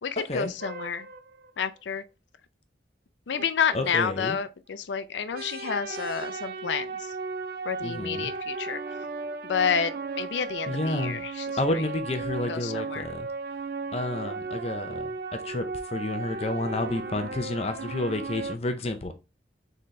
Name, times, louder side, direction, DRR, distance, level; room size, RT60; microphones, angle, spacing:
voice 1, 0.0-1.1 1.6-2.0 3.3-7.1 7.7-8.8 9.4-11.5 11.7-11.8 12.5-13.1, left 6 dB, 85° left, 0.5 m, -29 dB
sound 1, 0.6-1.5 3.4-3.5 3.7-3.8 4.0-4.1 4.4-4.5 5.3-18.6, right 4 dB, 55° right, 0.4 m, -35 dB
voice 2, 3.7-4.4 7.8-8.3 10.7-11.2 11.6-13.3 13.9-19.1, left 2 dB, 35° left, 0.5 m, -30 dB
4.3 x 3.9 x 3.1 m
head